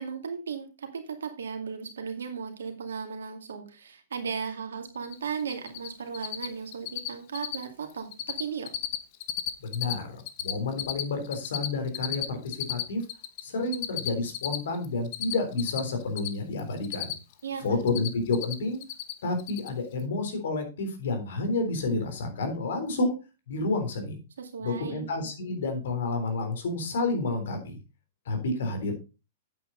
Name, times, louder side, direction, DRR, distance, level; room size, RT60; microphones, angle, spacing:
voice 1, 0.0-8.7 17.4-17.9 24.4-25.0, right 6 dB, 80° right, 5 dB, 2.3 m, -36 dB
Cricket, 5.0-5.1 5.4-5.9 6.1-6.5 6.7-7.1 7.3-7.6 7.9-8.4 8.7-9.9 10.2-13.4 13.7-16.3 16.6-17.4 17.7-18.5 18.8-19.1 19.4-19.7, left 13 dB, 50° left, 1.1 m, -32 dB
voice 2, 9.6-13.0 13.4-17.1 17.6-18.8 19.2-23.1 23.5-24.2 24.6-27.8 28.3-28.9, left 3 dB, 70° left, 6 dB, 3.5 m, -30 dB
8.7 x 8.4 x 3.9 m, 0.29 s
hypercardioid pair, 115°, 0 cm